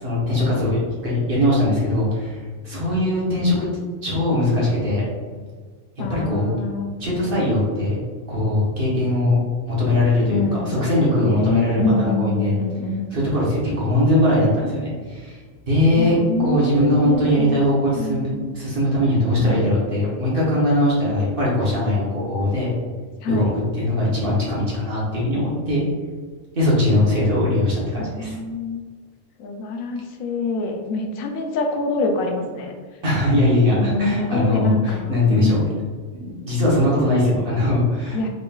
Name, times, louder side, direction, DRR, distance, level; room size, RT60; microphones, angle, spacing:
voice 1, 0.0-3.5 4.0-5.1 6.1-6.5 7.0-8.0 8.3-9.4 9.7-12.6 13.1-22.7 23.3-23.5 23.7-25.9 26.5-28.4 33.0-35.6 36.1-38.3, left 1 dB, 45° right, -6 dB, 1.2 m, -20 dB
voice 2, 6.0-6.9 10.3-13.1 16.0-17.6 17.9-18.5 19.4-19.8 23.2-23.5 28.0-28.8 29.4-32.7 33.7-35.7 38.1-38.3, left 3 dB, 85° left, 3 dB, 1.0 m, -26 dB
3.9 x 3.6 x 2.3 m, 1.5 s
omnidirectional pair, 1.4 m